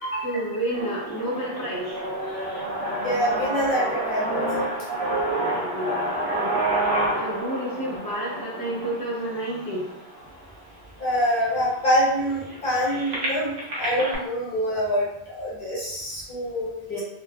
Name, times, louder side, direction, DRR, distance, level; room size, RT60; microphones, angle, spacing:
voice 1, 0.2-1.8 5.3-6.7 7.1-9.9 16.9-17.0, right 1 dB, 25° left, -5 dB, 0.5 m, -30 dB
sound 1, 0.7-10.7 11.3-11.4 11.7-14.2, right 1 dB, 70° right, 1.0 m, -29 dB
voice 2, 3.0-4.5 11.0-17.0, equal, 55° left, -8 dB, 1.3 m, -25 dB
3.1 x 2.2 x 2.3 m, 0.85 s
omnidirectional pair, 1.1 m